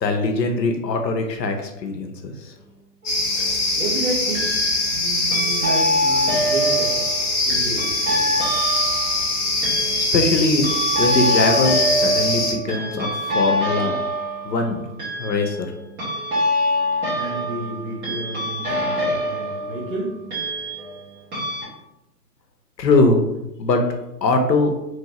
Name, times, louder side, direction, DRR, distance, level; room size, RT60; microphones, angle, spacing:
voice 1, 0.0-2.5 10.1-10.7 11.0-14.0 14.4-14.8 15.2-15.7 22.8-23.2 23.6-23.8 24.2-24.7, left 2 dB, 85° left, 4 dB, 0.6 m, -21 dB
sound 1, 3.0-3.6 4.3-5.0 5.3-21.0 21.3-21.6, equal, 20° right, 1.0 m, -25 dB
sound 2, 3.1-12.5, left 2 dB, 30° left, 0.7 m, -23 dB
voice 2, 3.8-4.6 4.9-7.0 7.5-8.2 17.1-20.1, right 2 dB, 35° right, -5 dB, 0.6 m, -31 dB
2.8 x 2.6 x 2.9 m, 0.91 s
figure-of-eight pair, 115°, 49 cm